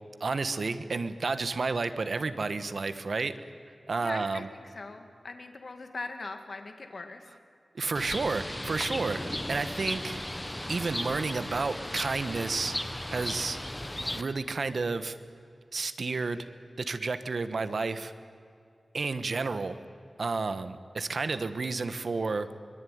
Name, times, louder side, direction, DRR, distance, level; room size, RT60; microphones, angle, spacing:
voice 1, 0.2-3.4 3.9-4.5 7.7-9.2 9.5-10.2 10.7-12.8 13.1-13.6 14.1-15.2 15.7-16.5 16.8-18.1 18.9-19.8 20.2-22.5, right 3 dB, 65° right, 11 dB, 1.3 m, -31 dB
voice 2, 4.0-7.3, left 3 dB, 60° left, 5 dB, 2.3 m, -41 dB
Bird, 7.9-14.2, left 1 dB, 10° left, 1.2 m, -35 dB
24.0 x 23.0 x 9.6 m, 2.5 s
wide cardioid pair, 95°, 0 cm